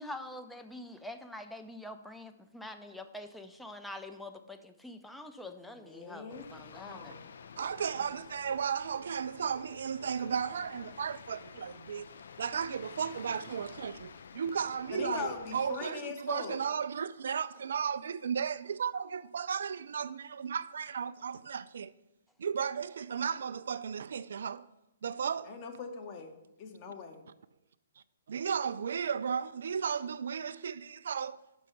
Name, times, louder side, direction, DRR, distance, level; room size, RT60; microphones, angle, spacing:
voice 1, 0.0-7.2, left 1 dB, 5° left, 0.5 m, -45 dB
voice 2, 5.8-7.2 14.9-16.6 25.4-26.3 26.6-27.2, left 6 dB, 35° left, 1.0 m, -41 dB
sound 1, 6.3-15.8, left 6 dB, 60° left, 0.4 m, -51 dB
voice 3, 7.6-12.1 12.4-21.9 22.4-24.7 25.0-25.6 28.3-31.4, right 7 dB, 60° right, 0.3 m, -34 dB
6.3 x 5.3 x 5.4 m
figure-of-eight pair, 120°, 0 cm